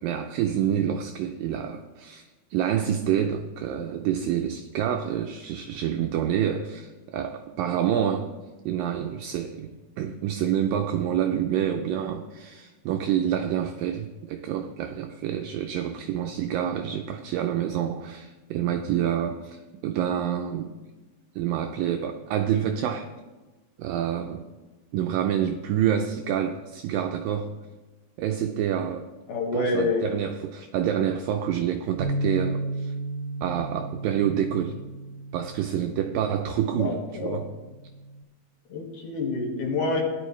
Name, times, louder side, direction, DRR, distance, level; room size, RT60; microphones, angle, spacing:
voice 1, 0.0-8.4 8.7-20.7 21.4-23.1 23.8-24.5 24.9-27.6 28.2-29.1 29.5-32.9 33.4-34.8 35.3-37.5, right 9 dB, 85° right, 2.0 m, -27 dB
voice 2, 29.3-30.0 36.8-37.4 38.7-40.0, left 3 dB, 60° left, 2.8 m, -27 dB
Bass guitar, 32.0-38.2, right 2 dB, 65° right, 2.2 m, -34 dB
16.5 x 11.0 x 3.1 m
omnidirectional pair, 4.6 m